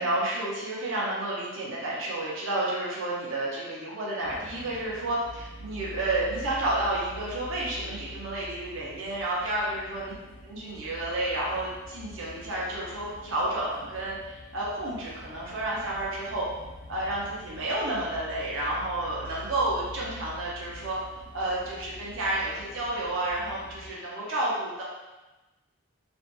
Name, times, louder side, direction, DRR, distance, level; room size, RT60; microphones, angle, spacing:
voice 1, 0.0-10.1 10.4-16.5 16.9-21.0 21.3-24.8, right 1 dB, 70° right, -5 dB, 0.6 m, -30 dB
sound 1, 4.2-23.9, left 1 dB, 90° left, 0.8 m, -45 dB
2.6 x 2.5 x 2.2 m, 1.1 s
head